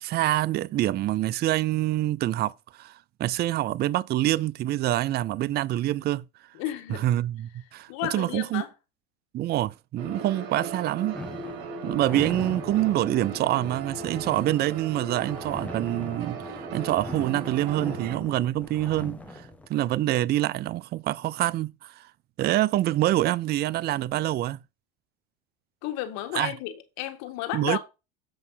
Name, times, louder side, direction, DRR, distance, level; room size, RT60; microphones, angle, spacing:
voice 1, 0.0-6.2 6.9-8.6 9.3-11.2 11.8-22.1 22.4-24.6 26.3-26.5 27.5-27.8, right 14 dB, 35° right, 0.4 m, -26 dB
voice 2, 6.5-7.1 7.9-8.7 11.6-11.8 25.8-27.8, left 13 dB, 65° left, 1.8 m, -33 dB
sound 1, 10.0-18.2, right 4 dB, 75° right, 2.3 m, -38 dB
sound 2, 11.1-19.7, left 1 dB, 5° left, 1.4 m, -40 dB
7.8 x 5.5 x 5.5 m
supercardioid pair, 105°, 29 cm